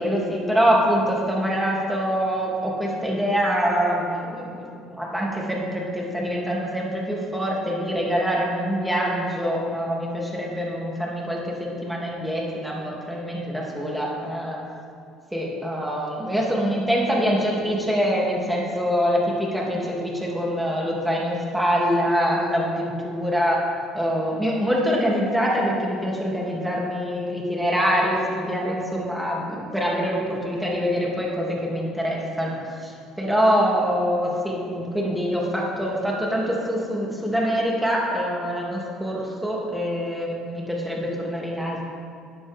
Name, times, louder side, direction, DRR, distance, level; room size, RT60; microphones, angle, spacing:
voice 1, 0.0-14.6 15.3-23.6 23.9-41.8, equal, 5° right, -3 dB, 2.9 m, -25 dB
13.5 x 9.5 x 3.7 m, 2.5 s
supercardioid pair, 75°, 0 cm